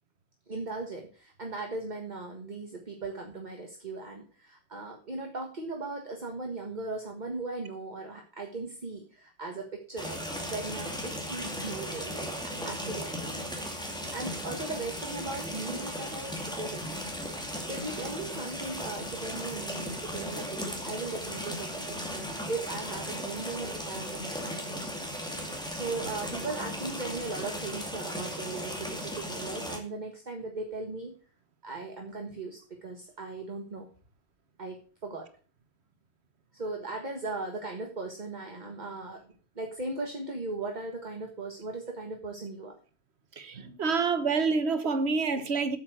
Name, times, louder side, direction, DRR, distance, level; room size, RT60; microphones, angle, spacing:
voice 1, 0.5-10.2 10.5-17.0 17.6-24.9 25.7-31.1 31.6-33.9 34.6-35.3 36.5-39.2 39.6-42.7, right 3 dB, 45° right, 1.7 m, -38 dB
sound 1, 10.0-29.8, equal, 5° left, 2.3 m, -36 dB
voice 2, 43.4-45.8, right 4 dB, 85° right, 1.5 m, -27 dB
8.6 x 7.4 x 7.7 m
omnidirectional pair, 1.1 m